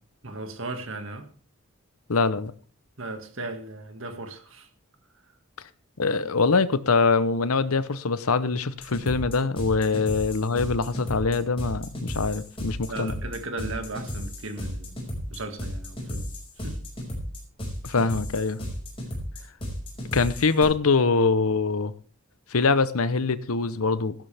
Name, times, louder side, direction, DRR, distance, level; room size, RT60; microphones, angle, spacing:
voice 1, 0.2-1.3 3.0-4.7 9.9-10.0 12.9-15.0 15.3-16.3 16.6-16.8, right 2 dB, 60° right, 2.0 m, -36 dB
voice 2, 2.1-2.5 6.0-13.1 17.8-18.6 20.1-21.9 22.5-24.3, left 4 dB, 75° left, 0.8 m, -23 dB
sound 1, 8.8-20.6, equal, 25° left, 5.5 m, -34 dB
15.5 x 12.0 x 3.5 m
head